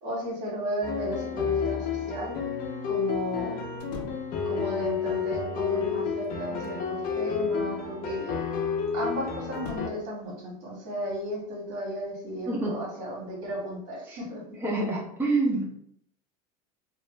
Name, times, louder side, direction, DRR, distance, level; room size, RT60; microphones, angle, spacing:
voice 1, 0.0-2.4 2.9-3.6 4.4-8.4 8.9-14.4, equal, 60° right, -2 dB, 1.3 m, -34 dB
sound 1, 0.8-9.9, left 6 dB, 45° left, 0.6 m, -30 dB
sound 2, 3.8-4.4 6.0-6.9 9.5-10.1, left 3 dB, 90° left, 0.5 m, -43 dB
voice 2, 12.5-12.8 14.0-14.2 14.6-15.6, right 2 dB, 10° right, -3 dB, 0.7 m, -27 dB
2.5 x 2.0 x 3.3 m, 0.69 s
supercardioid pair, 105°, 20 cm